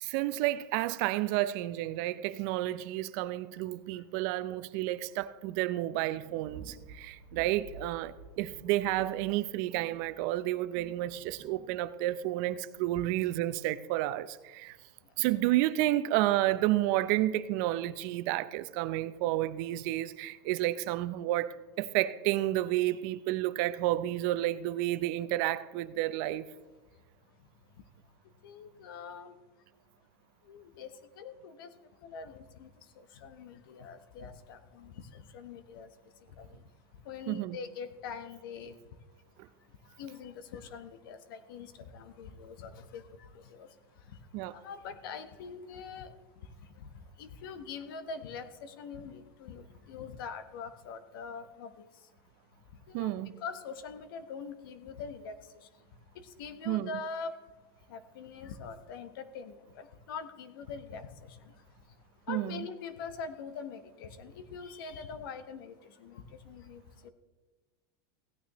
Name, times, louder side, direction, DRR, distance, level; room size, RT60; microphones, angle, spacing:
voice 1, 0.0-14.8 15.2-26.5 37.3-37.6 44.3-44.5 52.9-53.3 56.7-56.9 62.3-62.6, right 15 dB, 50° right, 0.5 m, -31 dB
sound 1, 5.9-12.1, right 5 dB, 70° right, 1.3 m, -51 dB
voice 2, 28.4-29.3 30.4-30.9 31.2-31.7 32.0-32.7 33.0-35.9 36.4-36.6 37.0-38.8 39.9-43.7 44.1-44.2 44.5-46.1 46.8-51.9 52.9-53.1 53.4-55.5 56.1-57.3 57.9-61.5 62.3-67.1, left 5 dB, 75° left, 1.1 m, -43 dB
16.0 x 9.3 x 3.0 m
supercardioid pair, 145°, 12 cm